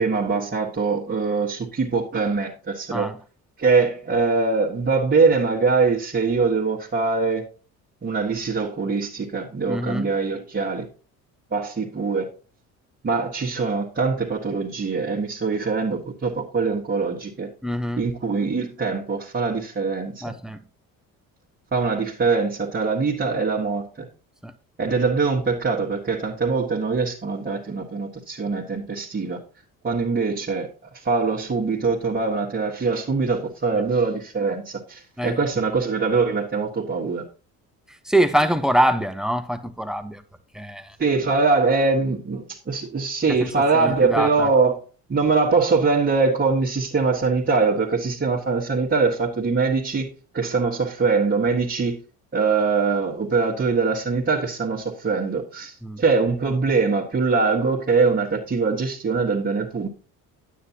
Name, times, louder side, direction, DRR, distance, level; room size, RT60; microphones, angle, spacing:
voice 1, 0.0-3.1 3.6-7.4 8.0-10.9 11.5-12.3 13.0-17.5 18.0-20.4 21.7-24.1 24.8-29.4 29.8-30.7 30.9-37.2 41.0-44.8 45.1-50.1 50.3-52.0 52.3-59.9, right 4 dB, 25° right, 1.7 m, -23 dB
voice 2, 9.7-10.1 17.6-18.0 20.2-20.6 24.4-24.5 33.7-33.8 35.2-35.6 37.9-40.2 40.5-41.0 43.3-44.5 55.8-56.0, right 1 dB, ahead, 1.0 m, -24 dB
9.3 x 8.5 x 2.9 m
hypercardioid pair, 65°, 40 cm